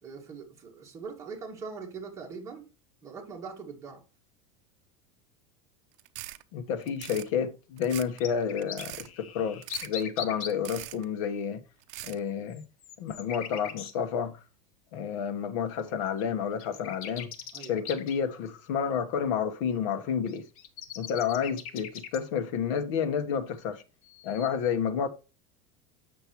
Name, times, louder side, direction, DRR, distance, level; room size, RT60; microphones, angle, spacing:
voice 1, 0.0-2.7 3.0-4.0 17.5-17.9, right 5 dB, 15° right, 2.0 m, -42 dB
sound 1, 6.0-6.4 6.8-7.3 7.8-8.2 8.6-9.1 9.6-10.0 10.5-11.0 11.8-12.2, right 17 dB, 60° right, 0.6 m, -41 dB
voice 2, 6.5-11.6 12.0-12.6 13.0-14.4 14.9-17.3 17.7-20.4 21.0-23.8 24.2-25.1, left 7 dB, 60° left, 1.1 m, -30 dB
sound 2, 7.9-10.5 12.5-13.9 15.8-15.9 16.2-16.3 16.6-18.2 20.3-22.2 24.0-24.5, left 8 dB, 80° left, 1.2 m, -40 dB
8.2 x 6.6 x 3.0 m
supercardioid pair, 165°, 18 cm